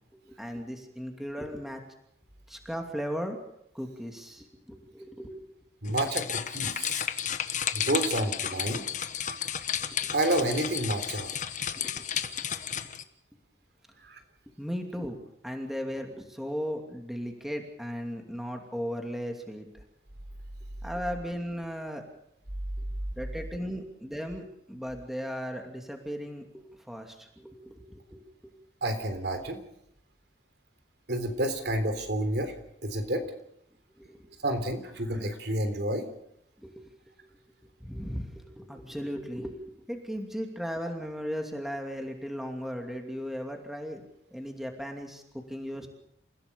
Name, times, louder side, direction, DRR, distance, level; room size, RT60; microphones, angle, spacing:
voice 1, 0.1-1.8 2.5-3.4 3.7-5.4 9.9-10.1 11.7-12.1 14.6-15.2 15.4-19.8 20.8-22.0 22.8-22.9 23.2-28.5 34.0-34.3 36.6-36.9 37.8-44.0 44.3-45.9, equal, ahead, 3 dB, 2.7 m, -37 dB
voice 2, 5.8-7.0 7.7-8.8 10.1-11.3 14.1-14.2 28.8-29.6 31.1-32.5 32.8-33.2 34.4-36.1, right 1 dB, 60° right, 7 dB, 3.6 m, -29 dB
sound 1, 5.9-13.0, left 9 dB, 45° left, 1.3 m, -32 dB
29.0 x 16.0 x 6.9 m, 0.78 s
head